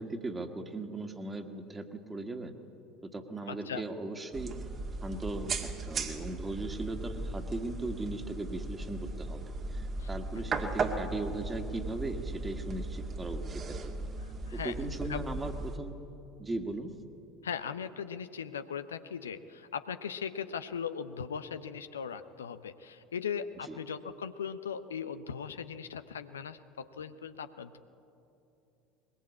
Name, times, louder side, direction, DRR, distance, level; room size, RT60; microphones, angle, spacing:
voice 1, 0.0-2.5 3.0-4.5 5.0-9.4 9.7-13.8 14.5-16.0 16.4-16.9 23.7-23.8, right 2 dB, 20° right, 6 dB, 2.1 m, -38 dB
voice 2, 3.5-3.8 10.0-10.1 14.2-14.7 15.1-15.2 17.4-27.8, left 7 dB, 80° left, 11 dB, 0.7 m, -39 dB
sound 1, 4.3-15.8, right 3 dB, 35° right, 2.1 m, -37 dB
21.0 x 21.0 x 8.5 m, 2.9 s
figure-of-eight pair, 70°, 0 cm